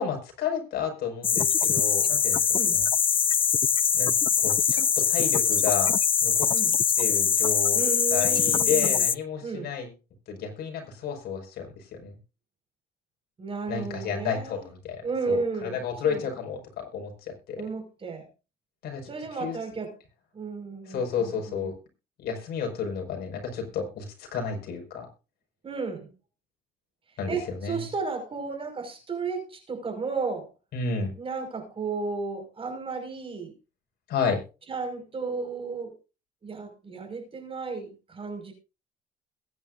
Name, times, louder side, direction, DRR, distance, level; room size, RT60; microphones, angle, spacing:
voice 1, 0.0-2.4 2.7-2.9 3.9-5.9 6.2-6.5 7.0-7.8 8.1-9.9 10.3-12.1 13.7-17.6 18.8-19.6 20.9-21.7 22.2-25.1 27.2-27.8 30.7-31.1 34.1-34.4, left 6 dB, 70° left, 3 dB, 5.5 m, -32 dB
sound 1, 1.2-9.1, left 7 dB, 30° left, 0.5 m, -23 dB
voice 2, 7.7-9.0 9.4-9.7 13.4-14.7 15.0-16.2 17.6-18.3 19.1-19.9 20.3-21.6 25.6-26.1 27.3-30.5 31.2-33.5 34.7-35.9 36.4-38.5, right 4 dB, 35° right, 4 dB, 5.5 m, -33 dB
21.5 x 10.0 x 2.6 m, 0.31 s
cardioid pair, 110°, 17 cm